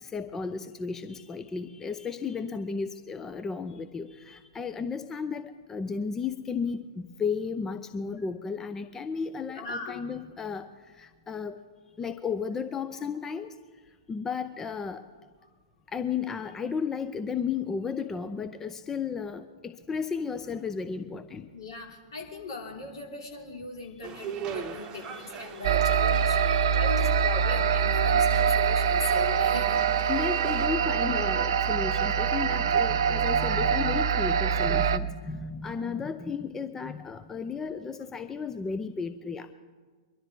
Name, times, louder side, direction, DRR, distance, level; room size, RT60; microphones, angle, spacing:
voice 1, 0.0-10.7 11.0-11.6 12.0-13.5 14.1-15.0 15.9-21.5 25.1-25.2 26.5-26.8 30.1-39.5, left 5 dB, 15° left, 10 dB, 0.6 m, -34 dB
voice 2, 9.5-10.0 21.5-30.1 35.5-35.9, left 3 dB, 65° left, 0 dB, 3.3 m, -39 dB
sound 1, 24.0-30.7, right 8 dB, 25° right, 0.9 m, -42 dB
sound 2, 25.6-35.0, right 7 dB, 60° right, 0.6 m, -24 dB
23.0 x 12.5 x 3.8 m, 1.5 s
figure-of-eight pair, 105°, 3 cm